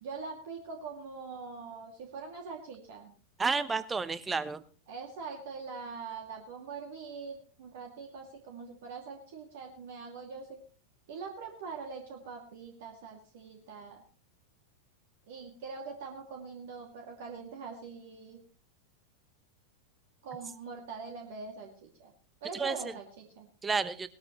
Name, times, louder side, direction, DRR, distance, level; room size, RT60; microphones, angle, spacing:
voice 1, 0.0-3.1 4.9-10.6 11.1-14.0 15.3-18.4 20.2-22.1 22.4-23.5, right 5 dB, 55° right, 1 dB, 2.6 m, -43 dB
voice 2, 3.4-4.6 22.5-22.9 23.6-24.1, right 4 dB, 15° right, 14 dB, 1.0 m, -31 dB
19.0 x 13.0 x 3.2 m, 0.36 s
figure-of-eight pair, 90°, 0 cm